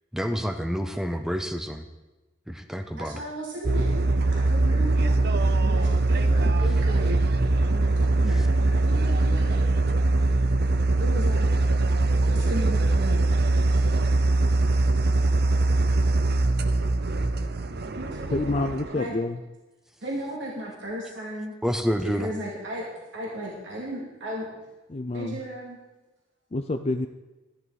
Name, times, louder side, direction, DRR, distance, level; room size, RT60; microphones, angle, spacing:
voice 1, 0.1-1.9 2.5-3.2 21.6-22.3, equal, 5° right, 7 dB, 0.7 m, -28 dB
voice 2, 2.9-5.2 5.6-7.2 7.6-9.8 11.0-11.5 12.3-13.4 13.7-13.8 17.9-18.6 18.9-19.1 20.0-21.5 22.2-24.5 25.1-25.8, right 1 dB, 85° right, -4 dB, 2.7 m, -35 dB
sound 1, 3.6-18.9, right 2 dB, 55° right, 0.6 m, -22 dB
voice 3, 18.3-19.4 24.9-25.4 26.5-27.1, left 2 dB, 35° left, 7 dB, 0.5 m, -28 dB
13.5 x 11.5 x 4.1 m, 1.1 s
head